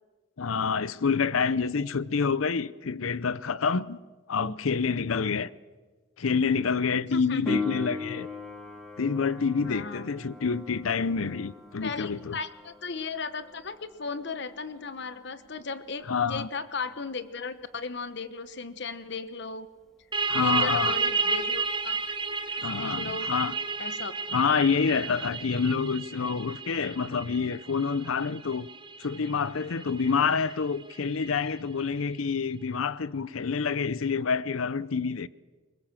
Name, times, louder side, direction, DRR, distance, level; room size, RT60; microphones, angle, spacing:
voice 1, 0.4-4.0 4.3-5.5 6.2-8.3 9.0-12.4 16.1-16.5 20.3-21.0 22.6-23.5 24.3-28.7 29.0-35.3, left 5 dB, 85° left, 0.7 m, -27 dB
voice 2, 7.1-7.6 9.6-10.1 11.8-19.7 20.3-22.1 22.5-23.3 23.8-24.1, left 4 dB, 55° left, 1.1 m, -36 dB
Piano, 7.5-17.9 25.4-25.5, left 3 dB, ahead, 2.1 m, -40 dB
sound 1, 20.1-31.5, right 4 dB, 25° right, 1.2 m, -32 dB
22.0 x 20.5 x 7.4 m
head